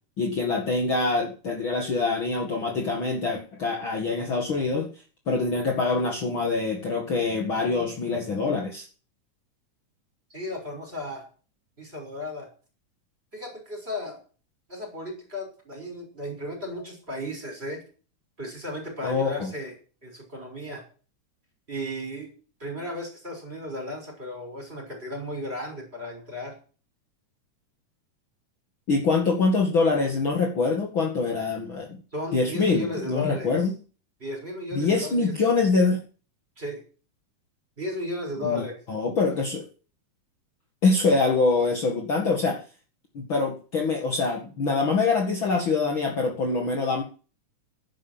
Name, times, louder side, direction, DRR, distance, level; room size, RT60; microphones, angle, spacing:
voice 1, 0.2-4.9 5.3-8.8 19.0-19.5 28.9-32.0 32.3-33.7 34.7-36.0 38.4-38.6 38.9-39.6 40.8-42.6 43.1-47.0, left 3 dB, 45° left, 1 dB, 2.6 m, -24 dB
voice 2, 10.3-11.3 11.8-12.5 13.3-14.2 14.7-17.8 18.4-19.7 20.0-20.8 21.7-22.3 22.6-26.5 32.1-33.7 34.2-35.3 36.6-36.8 37.8-38.8, left 1 dB, 20° right, 2 dB, 6.3 m, -34 dB
11.5 x 10.5 x 7.7 m, 0.37 s
omnidirectional pair, 3.6 m